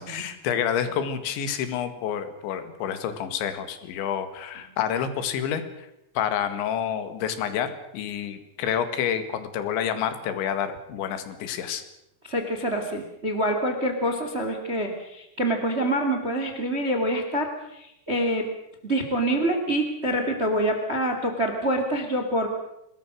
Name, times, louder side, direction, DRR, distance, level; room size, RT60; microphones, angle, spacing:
voice 1, 0.0-5.9 6.2-11.8, left 8 dB, 65° left, 10 dB, 4.0 m, -28 dB
voice 2, 12.2-18.4 18.8-22.5, right 1 dB, 40° right, 5 dB, 0.9 m, -26 dB
26.5 x 20.5 x 6.4 m, 0.83 s
omnidirectional pair, 6.0 m